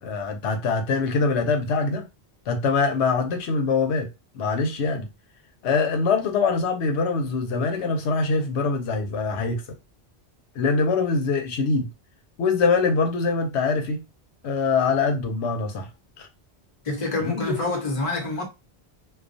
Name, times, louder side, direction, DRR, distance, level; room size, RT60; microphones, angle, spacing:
voice 1, 0.0-2.1 2.5-4.1 4.3-5.1 5.6-9.6 10.5-11.9 12.4-14.0 14.4-15.9 16.2-16.3 17.2-17.6, left 4 dB, 90° left, 0.9 m, -23 dB
voice 2, 16.8-18.5, left 2 dB, 35° left, 0.8 m, -27 dB
2.3 x 2.2 x 2.5 m
omnidirectional pair, 1.1 m